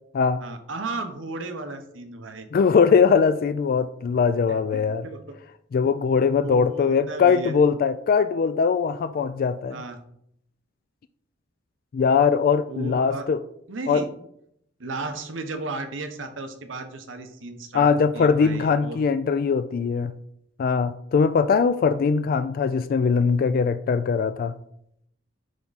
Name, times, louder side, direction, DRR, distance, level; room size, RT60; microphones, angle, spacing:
voice 1, 0.4-2.5 4.5-5.2 6.4-7.6 9.7-10.0 12.7-13.3 13.7-14.1 14.8-17.9 18.1-19.0, right 3 dB, 80° right, 7 dB, 1.0 m, -34 dB
voice 2, 2.5-5.1 5.7-9.8 11.9-13.4 13.9-14.0 17.7-20.1 20.6-24.5, left 5 dB, 50° left, 12 dB, 0.3 m, -21 dB
10.5 x 3.6 x 4.1 m, 0.73 s
head